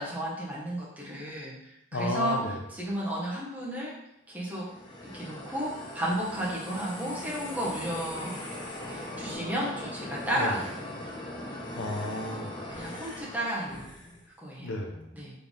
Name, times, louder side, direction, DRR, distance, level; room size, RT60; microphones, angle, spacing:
voice 1, 0.0-1.5 1.9-2.4 2.7-3.9 4.3-4.6 5.0-8.4 8.9-11.1 12.7-13.8 14.4-14.7 15.1-15.3, equal, 10° right, -6 dB, 1.0 m, -33 dB
voice 2, 1.9-2.6 10.3-10.5 11.8-12.6 14.6-15.1, left 2 dB, 85° left, 3 dB, 0.6 m, -33 dB
sound 1, 4.5-14.2, left 1 dB, 25° left, 0.7 m, -40 dB
4.1 x 3.3 x 3.6 m, 0.85 s
head